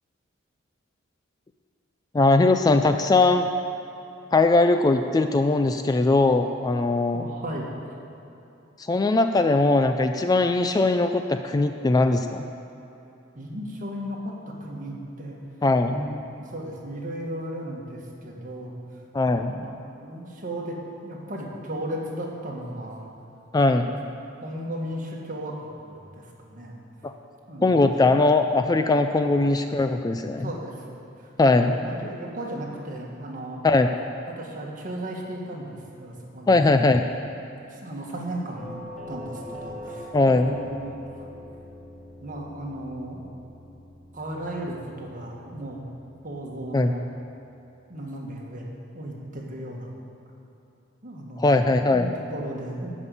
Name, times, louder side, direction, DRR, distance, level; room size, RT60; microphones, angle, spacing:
voice 1, 2.1-3.5 4.3-7.2 8.9-12.4 15.6-15.9 19.1-19.5 23.5-23.9 27.0-27.1 27.6-30.5 31.4-31.7 33.6-33.9 36.5-37.0 40.1-40.5 46.7-46.9 51.4-52.1, left 2 dB, 20° left, 7 dB, 0.3 m, -20 dB
voice 2, 7.1-7.9 13.3-15.4 15.9-16.1 16.4-19.0 19.4-19.6 19.9-23.1 23.9-24.0 24.4-26.8 27.5-28.2 28.6-28.7 29.1-29.3 30.4-33.7 34.3-36.7 37.4-38.8 39.1-41.2 42.2-43.2 44.1-45.9 46.2-47.0 47.9-48.6 48.9-49.9 51.0-51.6 51.9-52.9, right 1 dB, 45° right, -2 dB, 1.7 m, -35 dB
Doorbell, 38.6-47.4, left 1 dB, ahead, 2.3 m, -43 dB
12.5 x 5.4 x 8.2 m, 2.9 s
head